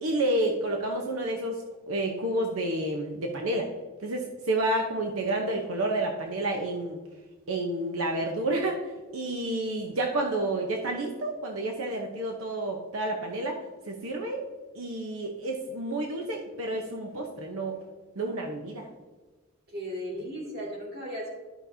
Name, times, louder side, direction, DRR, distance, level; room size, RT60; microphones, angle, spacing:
voice 1, 0.0-3.7 4.0-7.0 7.5-13.6 13.9-14.4 14.7-17.8 18.2-18.9, right 1 dB, 85° right, 2 dB, 0.9 m, -30 dB
voice 2, 19.7-21.4, equal, 45° right, -2 dB, 2.3 m, -36 dB
11.5 x 5.9 x 2.7 m, 1.3 s
head